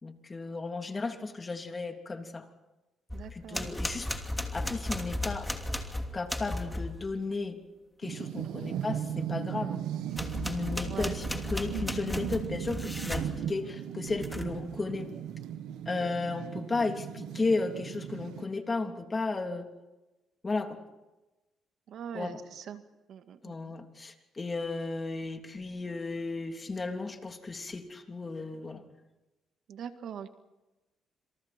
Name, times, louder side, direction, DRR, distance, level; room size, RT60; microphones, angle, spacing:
voice 1, 0.0-2.5 3.3-4.1 4.5-5.5 6.1-7.6 8.0-9.8 10.4-15.1 15.8-19.7 20.4-20.8 22.1-22.4 23.4-28.8, left 3 dB, 30° left, 5 dB, 3.2 m, -34 dB
sound 1, 3.1-7.0 10.1-13.3 14.1-14.6, left 1 dB, 5° left, 2.9 m, -35 dB
voice 2, 3.1-3.7 8.4-8.7 10.9-11.2 21.9-22.8 23.1-23.8 29.7-30.3, right 8 dB, 70° right, 8 dB, 1.9 m, -42 dB
sound 2, 8.0-18.5, right 10 dB, 90° right, 1.6 m, -37 dB
27.5 x 27.5 x 4.5 m, 1.1 s
cardioid pair, 90°, 0 cm